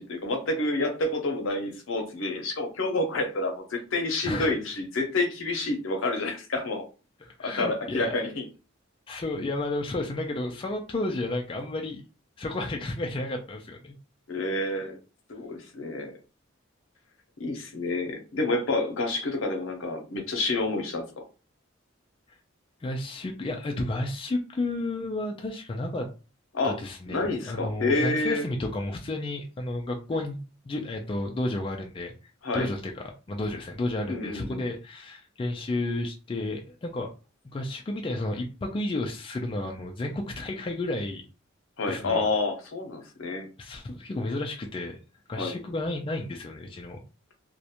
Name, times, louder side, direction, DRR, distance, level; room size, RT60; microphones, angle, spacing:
voice 1, 0.0-6.8 7.4-8.4 14.3-15.0 15.3-16.1 17.4-21.2 26.5-26.8 27.1-28.5 32.4-32.7 34.1-34.6 41.8-43.5 45.4-45.5, left 2 dB, 70° left, 4 dB, 0.7 m, -28 dB
voice 2, 7.2-8.2 9.1-12.0 12.4-13.9 22.8-26.1 26.6-30.4 30.6-32.1 32.5-37.1 37.4-41.2 41.9-42.2 43.6-45.0 45.3-47.0, left 2 dB, 25° left, 2 dB, 0.3 m, -32 dB
2.4 x 2.1 x 2.8 m, 0.33 s
head